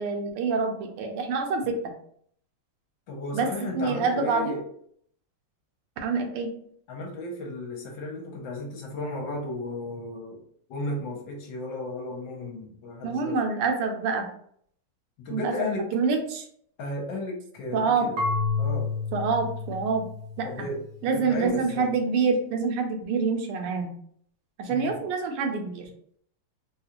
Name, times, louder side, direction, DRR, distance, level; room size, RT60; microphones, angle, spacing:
voice 1, 0.0-1.9 3.3-3.5 3.7-4.6 6.0-6.5 13.0-14.3 15.3-16.5 17.7-18.1 19.1-20.1 20.4-20.7 21.0-23.9 24.6-25.9, right 4 dB, 85° right, 4 dB, 1.6 m, -26 dB
voice 2, 3.1-4.6 6.9-10.4 10.7-13.4 15.2-15.8 16.8-18.2 18.6-18.9 20.4-21.9 24.7-25.0, left 2 dB, 65° left, -1 dB, 1.4 m, -34 dB
Marimba xylophone / Wood, 18.2-21.0, left 4 dB, 70° right, 1.1 m, -30 dB
3.9 x 2.3 x 2.8 m, 0.64 s
omnidirectional pair, 2.4 m